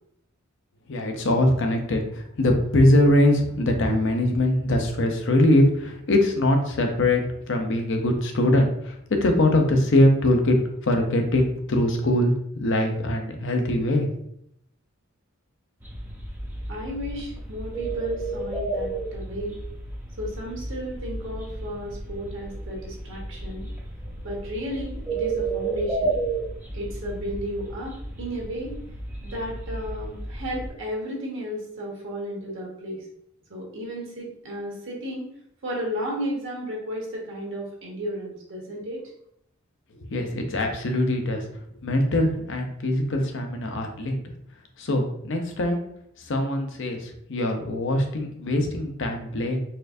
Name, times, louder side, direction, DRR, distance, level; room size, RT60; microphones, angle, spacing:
voice 1, 0.9-8.9 9.2-10.6 10.8-12.3 12.6-14.1 40.0-41.5 41.8-44.2 44.8-45.9 46.2-49.6, left 1 dB, 60° left, 4 dB, 0.6 m, -22 dB
sound 1, 15.8-30.7, right 3 dB, 10° right, 0.5 m, -33 dB
voice 2, 16.7-19.6 20.2-23.7 24.2-26.2 26.7-28.8 29.2-33.0 33.5-35.3 35.6-39.1, equal, 60° right, -2 dB, 1.2 m, -33 dB
4.2 x 2.6 x 2.5 m, 0.72 s
head